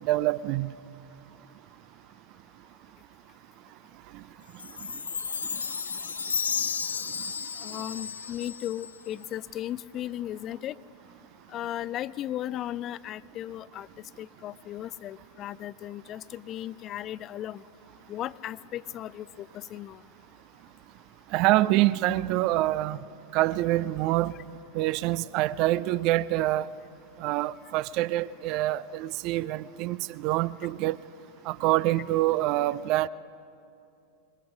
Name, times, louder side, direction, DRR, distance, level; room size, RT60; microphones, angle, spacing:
voice 1, 0.0-0.7 21.3-23.0 23.3-24.3 24.7-26.7 27.2-31.0 31.5-33.1, right 16 dB, 40° right, 0.4 m, -26 dB
Chime, 4.6-9.1, left 6 dB, 70° left, 0.7 m, -33 dB
voice 2, 7.6-10.8 11.5-13.9 14.2-17.6 18.1-20.0, left 12 dB, 30° left, 0.4 m, -36 dB
22.5 x 22.0 x 5.9 m
figure-of-eight pair, 90°, 0 cm